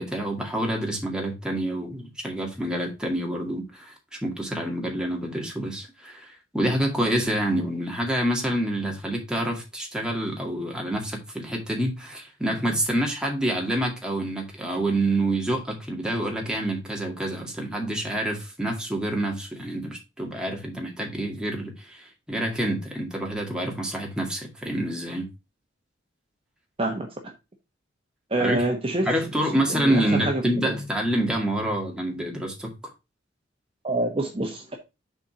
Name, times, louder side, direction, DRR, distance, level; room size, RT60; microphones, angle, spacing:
voice 1, 0.0-3.9 4.2-25.3 28.4-28.7 29.1-32.7, right 1 dB, 5° right, 2.1 m, -27 dB
voice 2, 28.3-29.1 29.7-30.7 33.8-34.7, right 1 dB, 30° right, 1.2 m, -26 dB
7.2 x 4.3 x 5.8 m
head